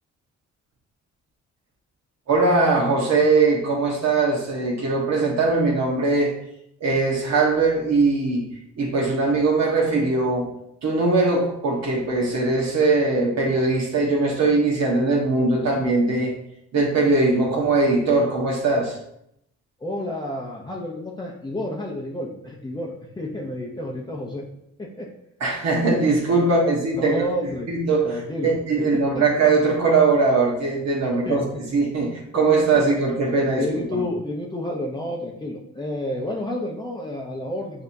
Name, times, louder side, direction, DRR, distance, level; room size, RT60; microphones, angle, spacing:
voice 1, 2.3-6.3 6.8-8.5 8.8-10.5 10.8-16.3 16.7-19.0 25.4-27.2 27.7-28.1 28.4-31.4 31.7-34.0, right 3 dB, 60° right, -2 dB, 1.2 m, -20 dB
voice 2, 19.8-24.5 24.8-25.1 27.0-27.7 28.0-28.8 29.1-29.3 31.0-31.6 32.3-32.4 32.7-32.8 33.5-37.8, left 1 dB, 15° left, -2 dB, 0.6 m, -30 dB
6.4 x 2.8 x 2.6 m, 0.75 s
cardioid pair, 90°, 30 cm